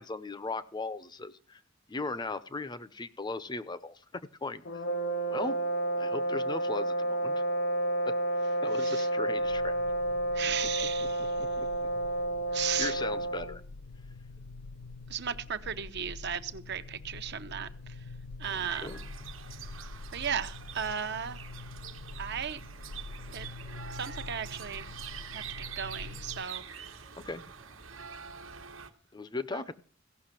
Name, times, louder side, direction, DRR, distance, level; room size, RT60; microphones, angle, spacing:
voice 1, 0.0-1.6 1.9-4.6 5.3-5.6 6.0-7.4 8.0-8.1 8.6-9.8 11.4-11.7 12.8-13.6 18.5-19.0 27.2-27.4 29.1-29.7, left 3 dB, 20° left, 14 dB, 0.6 m, -37 dB
sound 1, 4.7-13.6, right 1 dB, 65° left, 1.1 m, -30 dB
voice 2, 8.8-9.1 10.3-11.4 12.5-13.1 15.1-18.0 18.4-18.9 20.1-21.4 22.2-22.6 23.3-23.5 23.9-24.9 25.3-27.0 29.5-29.6, right 8 dB, 55° right, 10 dB, 0.9 m, -36 dB
sound 2, 9.4-26.4, left 3 dB, 90° left, 0.5 m, -46 dB
sound 3, 18.4-28.9, right 7 dB, 80° right, 1.3 m, -45 dB
16.0 x 6.1 x 7.5 m, 0.43 s
head